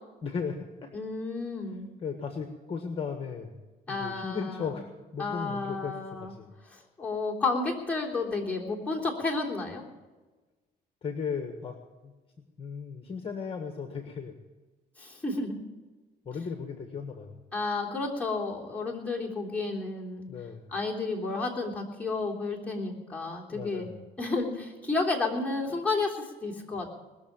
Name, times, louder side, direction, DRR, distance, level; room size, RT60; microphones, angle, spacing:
voice 1, 0.2-0.9 2.0-3.6 3.9-6.5 11.0-11.7 12.0-12.1 12.6-14.3 16.2-17.4 20.3-20.7 23.5-24.0, left 5 dB, 35° left, 5 dB, 1.5 m, -36 dB
voice 2, 0.9-1.9 3.9-4.6 5.2-6.3 6.7-9.8 15.0-15.6 17.5-20.3 20.7-23.9 24.2-26.9, left 3 dB, 10° left, -3 dB, 3.5 m, -31 dB
20.5 x 7.0 x 8.9 m, 1.2 s
cardioid pair, 110°, 17 cm